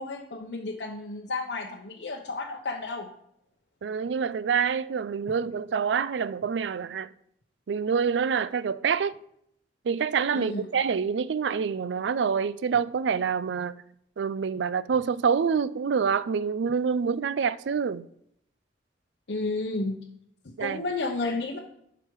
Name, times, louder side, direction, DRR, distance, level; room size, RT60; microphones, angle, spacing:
voice 1, 0.0-3.1 10.3-10.6 19.3-20.0 20.4-21.6, left 3 dB, 70° left, 0.9 m, -32 dB
voice 2, 3.8-7.1 7.7-9.2 9.8-13.8 14.2-18.1 20.6-20.8, right 6 dB, 80° right, 0.4 m, -26 dB
12.0 x 5.0 x 4.6 m
head